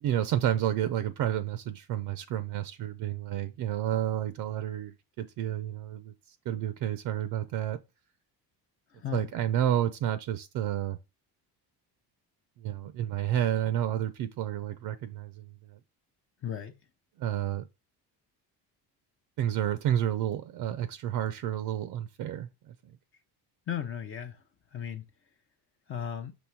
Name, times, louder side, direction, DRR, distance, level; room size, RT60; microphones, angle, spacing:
voice 1, 0.0-7.8 9.1-11.0 12.6-15.8 17.2-17.6 19.4-22.7, right 11 dB, 60° right, 0.6 m, -30 dB
voice 2, 8.9-9.3 16.4-16.7 23.7-24.4 24.7-25.1 25.9-26.3, left 9 dB, 35° left, 0.6 m, -35 dB
6.2 x 3.1 x 5.8 m
cardioid pair, 175°, 39 cm